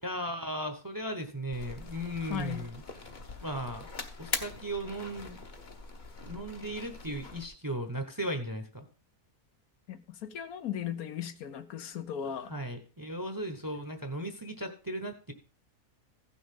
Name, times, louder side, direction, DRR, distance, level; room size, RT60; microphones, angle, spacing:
voice 1, 0.0-2.8 3.4-3.9 4.2-5.4 6.2-8.9 12.2-15.3, right 1 dB, 15° right, 0.8 m, -36 dB
sound 1, 1.5-7.5, left 3 dB, 35° left, 1.0 m, -42 dB
voice 2, 2.2-2.6 9.9-12.5, left 9 dB, 75° left, 1.2 m, -37 dB
15.5 x 6.3 x 3.7 m
omnidirectional pair, 1.5 m